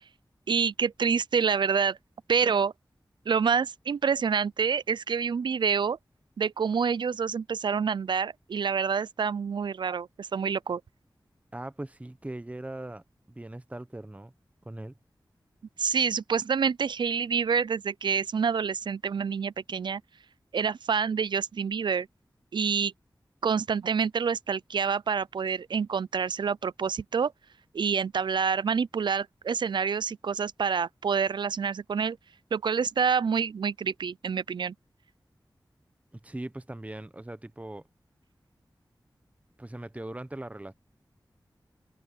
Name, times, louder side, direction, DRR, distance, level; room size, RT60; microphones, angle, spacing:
voice 1, 0.5-2.0 2.3-2.7 3.3-6.0 6.4-10.8 15.8-20.0 20.5-22.1 22.5-22.9 23.4-27.3 27.7-32.2 32.5-34.7, right 6 dB, 75° right, 0.4 m, -27 dB
voice 2, 11.5-14.3 14.6-14.9 36.1-37.8 39.6-40.7, right 1 dB, 15° right, 0.9 m, -40 dB
wide cardioid pair, 60°, 8 cm